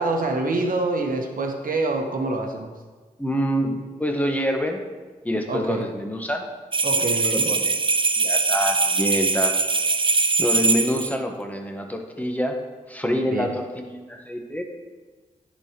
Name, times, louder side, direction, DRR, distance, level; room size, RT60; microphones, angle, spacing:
voice 1, 0.0-2.7 5.5-5.8 6.8-7.5 13.3-13.5, right 2 dB, 70° right, 3 dB, 1.0 m, -26 dB
voice 2, 3.2-4.8 5.2-6.4 7.3-7.8 8.2-9.5 10.4-12.6 12.9-14.6, equal, 10° left, 3 dB, 1.1 m, -26 dB
sound 1, 6.7-11.1, right 4 dB, 35° right, 0.5 m, -22 dB
10.5 x 4.2 x 2.9 m, 1.4 s
cardioid pair, 45°, 15 cm